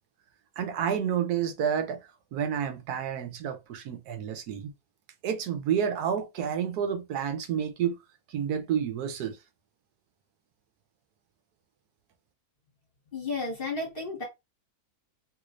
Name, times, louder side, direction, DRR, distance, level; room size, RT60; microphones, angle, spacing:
voice 1, 0.6-2.0 2.3-4.7 5.2-8.0 8.3-9.4, right 8 dB, 90° right, 1.3 m, -29 dB
voice 2, 13.1-14.2, left 3 dB, 35° left, 1.7 m, -32 dB
3.2 x 3.1 x 2.5 m
omnidirectional pair, 1.6 m